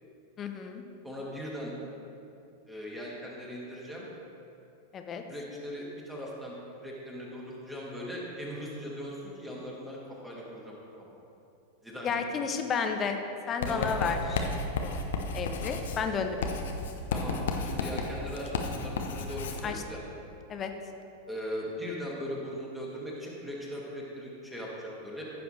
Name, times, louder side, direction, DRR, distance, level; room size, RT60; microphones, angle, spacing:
voice 1, 0.4-0.8 4.9-5.2 12.0-13.2 13.5-14.5 14.8-15.0 15.3-16.5 19.6-19.8 20.5-20.7, left 6 dB, 25° left, 6 dB, 0.8 m, -32 dB
voice 2, 1.0-1.7 2.7-4.1 5.3-6.6 6.8-11.1 11.8-12.3 13.7-13.9 17.1-17.4 17.6-20.0 21.3-25.2, equal, 5° right, -4 dB, 2.2 m, -39 dB
Writing, 13.6-19.7, left 3 dB, 60° left, 0.8 m, -33 dB
15.0 x 7.0 x 3.3 m, 2.7 s
figure-of-eight pair, 90°, 0 cm